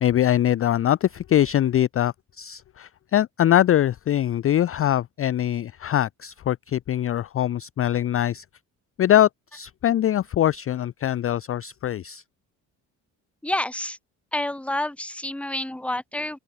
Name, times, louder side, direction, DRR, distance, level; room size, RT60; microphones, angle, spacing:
voice 1, 0.0-8.4 9.0-12.2, left 11 dB, 35° left, 0.4 m, -22 dB
voice 2, 13.4-14.0 14.3-16.4, left 1 dB, 5° left, 0.8 m, -28 dB
open air
supercardioid pair, 55°, 43 cm